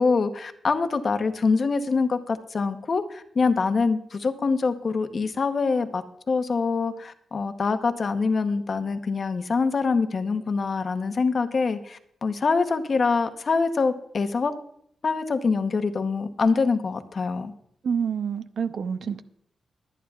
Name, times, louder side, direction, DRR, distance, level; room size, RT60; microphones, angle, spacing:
voice 1, 0.0-14.5 15.0-17.5, left 4 dB, 45° left, 9 dB, 0.9 m, -25 dB
voice 2, 17.8-19.2, right 7 dB, 70° right, 11 dB, 0.6 m, -27 dB
22.5 x 9.3 x 2.4 m, 0.68 s
wide cardioid pair, 110°, 0 cm